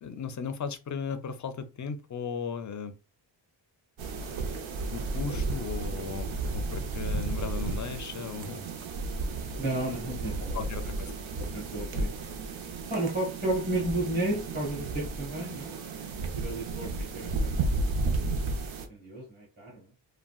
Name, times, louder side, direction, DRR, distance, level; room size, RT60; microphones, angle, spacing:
voice 1, 0.0-3.0 4.9-8.7 10.5-11.1, left 6 dB, 40° left, 0.4 m, -36 dB
sound 1, 4.0-18.9, right 3 dB, 90° right, 0.6 m, -33 dB
voice 2, 9.6-11.1 11.5-12.1 12.9-15.7 16.3-19.9, right 1 dB, 20° right, 1.3 m, -33 dB
3.6 x 2.2 x 2.3 m
wide cardioid pair, 120°, 46 cm